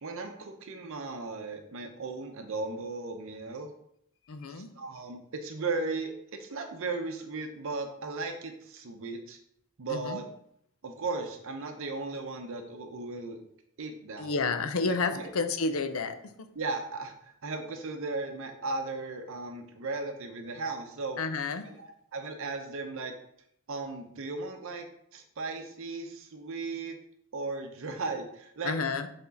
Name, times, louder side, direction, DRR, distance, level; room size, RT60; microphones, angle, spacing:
voice 1, 0.0-3.7 4.5-6.1 6.4-9.4 9.8-10.2 10.8-13.4 13.8-14.3 14.9-15.3 16.6-21.2 21.6-23.1 23.7-24.9 25.1-27.0 27.3-28.7, right 3 dB, 65° right, 5 dB, 0.7 m, -36 dB
voice 2, 4.3-4.7 9.9-10.2 14.2-16.2 21.2-21.7 28.6-29.1, left 4 dB, 70° left, 9 dB, 0.6 m, -30 dB
6.9 x 3.5 x 4.0 m, 0.71 s
head